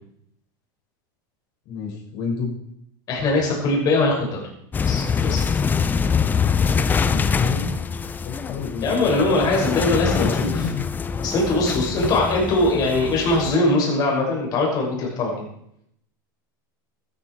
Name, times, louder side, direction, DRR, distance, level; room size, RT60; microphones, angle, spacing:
voice 1, 1.6-2.5 6.9-7.7 8.2-9.5 10.5-10.8 11.9-12.1, left 6 dB, 50° left, -1 dB, 6.4 m, -30 dB
voice 2, 3.1-4.4 4.8-5.4 8.8-10.7 11.2-15.5, left 2 dB, 35° left, -1 dB, 6.3 m, -21 dB
sound 1, 4.7-13.6, left 6 dB, 15° left, 0.7 m, -24 dB
14.0 x 14.0 x 4.8 m, 0.73 s
supercardioid pair, 145°, 11 cm